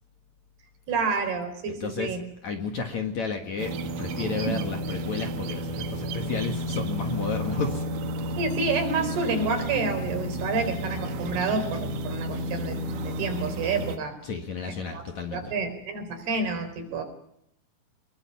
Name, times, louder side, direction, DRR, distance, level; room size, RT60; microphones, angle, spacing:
voice 1, 0.9-2.2 8.4-14.1 14.9-15.0 15.3-17.0, right 4 dB, 65° right, 6 dB, 5.8 m, -29 dB
voice 2, 1.8-2.2 2.4-7.9 14.2-15.5, left 5 dB, 50° left, 4 dB, 2.5 m, -32 dB
sound 1, 3.6-14.0, right 1 dB, 90° right, 3.9 m, -32 dB
24.0 x 22.5 x 5.8 m, 0.76 s
omnidirectional pair, 5.0 m